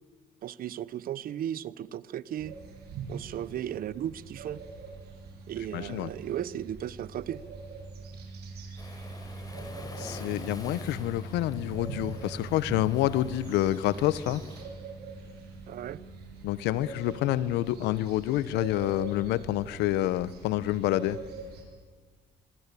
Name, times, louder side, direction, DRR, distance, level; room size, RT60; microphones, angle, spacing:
voice 1, 0.4-2.5 3.1-4.6 5.5-7.4 15.7-16.0, right 11 dB, 60° right, 19 dB, 0.9 m, -35 dB
sound 1, 2.4-21.6, right 4 dB, 75° right, 7.0 m, -43 dB
voice 2, 5.7-6.1 10.0-14.4 16.4-21.2, left 14 dB, 90° left, 18 dB, 1.0 m, -28 dB
Waves surf, 8.8-14.6, left 2 dB, 20° left, 5.0 m, -47 dB
25.0 x 24.5 x 8.4 m, 1.5 s
cardioid pair, 110°, 17 cm